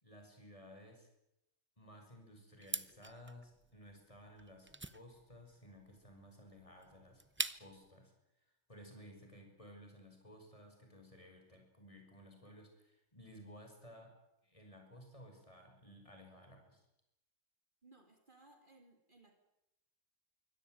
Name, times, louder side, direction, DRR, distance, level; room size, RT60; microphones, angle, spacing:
voice 1, 0.0-1.1 1.8-7.2 7.6-8.1 8.7-14.1 14.4-16.8, equal, 25° left, 3 dB, 5.8 m, -56 dB
sound 1, 2.6-7.9, right 2 dB, 15° right, 0.5 m, -44 dB
voice 2, 17.8-19.4, right 2 dB, 40° right, 5 dB, 2.6 m, -63 dB
24.5 x 17.0 x 9.1 m, 0.89 s
omnidirectional pair, 1.3 m